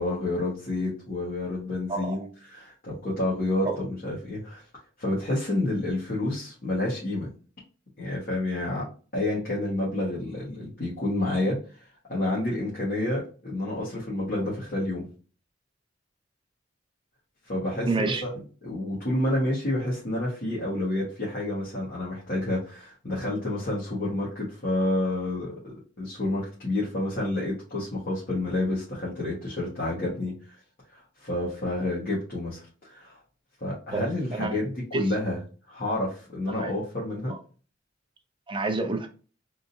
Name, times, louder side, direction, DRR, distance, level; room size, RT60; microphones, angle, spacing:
voice 1, 0.0-4.6 5.0-7.3 8.0-8.8 9.1-11.6 12.1-15.0 17.5-18.3 18.6-30.6 30.9-33.2 33.6-35.4 35.7-37.3, left 1 dB, 50° left, -7 dB, 1.4 m, -29 dB
voice 2, 1.9-2.3 3.6-3.8 17.9-18.2 33.9-34.1 34.3-34.6 34.9-35.1 36.5-36.7 37.3-37.4 38.5-39.1, right 3 dB, 25° right, 6 dB, 0.5 m, -29 dB
3.6 x 2.8 x 2.5 m, 0.37 s
head